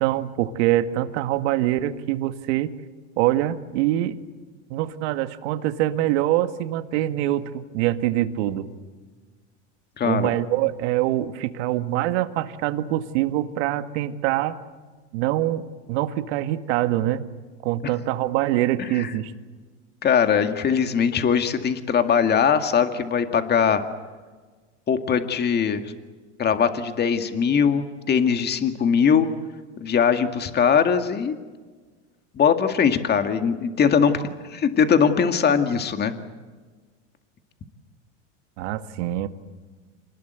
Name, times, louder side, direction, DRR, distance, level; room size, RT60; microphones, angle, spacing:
voice 1, 0.0-2.7 3.2-4.2 4.7-8.7 10.0-14.6 15.1-17.2 17.6-19.3 38.6-39.3, right 14 dB, 70° right, 9 dB, 1.9 m, -24 dB
voice 2, 10.0-10.3 18.8-19.1 20.0-23.8 24.9-25.8 26.4-29.3 29.8-31.3 32.4-34.2 34.5-36.1, left 7 dB, 30° left, 7 dB, 2.0 m, -21 dB
27.5 x 20.0 x 8.1 m, 1.4 s
supercardioid pair, 115°, 35 cm